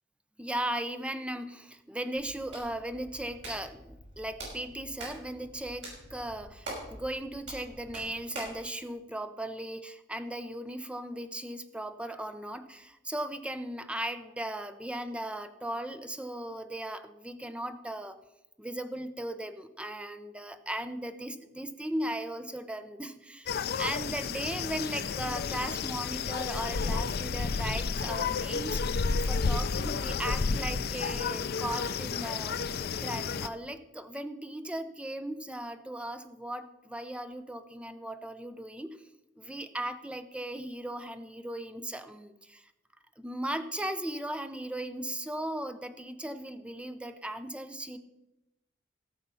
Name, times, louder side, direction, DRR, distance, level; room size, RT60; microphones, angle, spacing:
voice 1, 0.4-18.2 18.6-32.6 33.0-39.0 39.4-42.6 43.2-48.0, right 1 dB, 5° right, 10 dB, 0.7 m, -37 dB
Hands, 2.1-8.6, right 2 dB, 70° right, 5.8 m, -45 dB
sound 1, 23.5-33.5, left 5 dB, 55° left, 0.5 m, -31 dB
16.5 x 6.8 x 5.5 m, 0.95 s
head